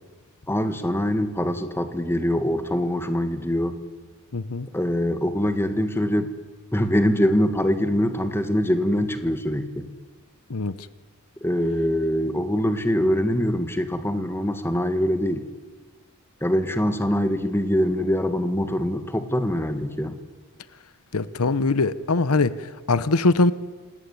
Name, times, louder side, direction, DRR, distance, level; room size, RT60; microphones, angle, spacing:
voice 1, 0.5-3.8 4.7-6.3 6.7-9.9 11.4-15.4 16.4-20.2, equal, 10° left, 1.8 m, -23 dB
voice 2, 4.3-4.7 10.5-10.7 21.1-23.5, left 3 dB, 80° left, 0.9 m, -22 dB
27.0 x 19.0 x 9.8 m
head